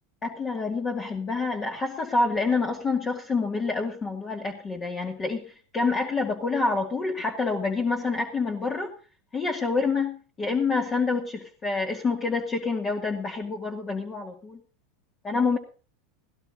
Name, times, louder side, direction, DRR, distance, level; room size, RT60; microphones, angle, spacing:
voice 1, 0.2-5.4 5.7-8.9 9.3-14.6 15.2-15.6, left 4 dB, 25° left, 2 dB, 2.2 m, -27 dB
17.5 x 16.5 x 2.7 m, 0.37 s
supercardioid pair, 115°, 0 cm